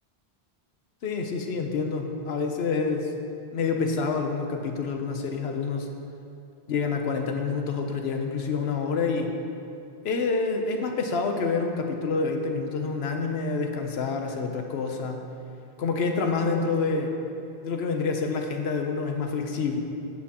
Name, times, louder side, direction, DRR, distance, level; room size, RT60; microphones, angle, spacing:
voice 1, 1.0-3.1 3.5-5.9 6.7-9.4 10.0-15.3 15.8-17.1 17.6-19.8, left 4 dB, 80° left, 4 dB, 1.0 m, -27 dB
10.0 x 7.3 x 2.9 m, 2.6 s
omnidirectional pair, 1.0 m